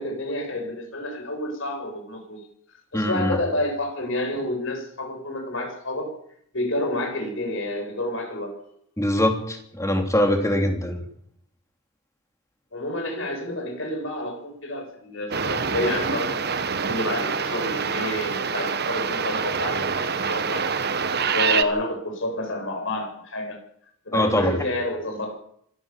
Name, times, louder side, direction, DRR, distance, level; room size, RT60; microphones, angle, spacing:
voice 1, 0.0-2.4 2.9-6.1 6.5-8.6 12.7-16.4 16.9-20.7 21.3-23.6 24.1-25.4, left 1 dB, 60° left, 4 dB, 7.4 m, -29 dB
voice 2, 2.9-3.4 9.0-11.0 24.1-24.6, left 1 dB, 15° left, 4 dB, 3.1 m, -22 dB
sound 1, 15.3-21.6, right 5 dB, 50° right, 1.4 m, -26 dB
25.0 x 15.0 x 7.4 m, 0.69 s
head